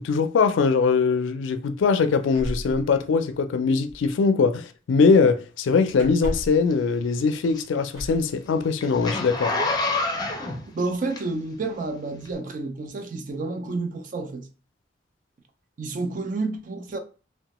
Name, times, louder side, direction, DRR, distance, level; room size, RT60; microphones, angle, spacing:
voice 1, 0.0-9.5, left 5 dB, 85° left, 0.4 m, -21 dB
sound 1, 2.3-3.6 3.9-4.1 5.9-6.7 7.9-8.3 9.4-9.6 10.0-10.4, equal, 25° right, 1.3 m, -34 dB
Zipper (clothing), 6.7-11.6 12.2-12.3, left 2 dB, 20° left, 0.5 m, -28 dB
voice 2, 10.7-14.5 15.8-17.0, right 3 dB, 45° right, 0.4 m, -30 dB
2.9 x 2.1 x 2.9 m
head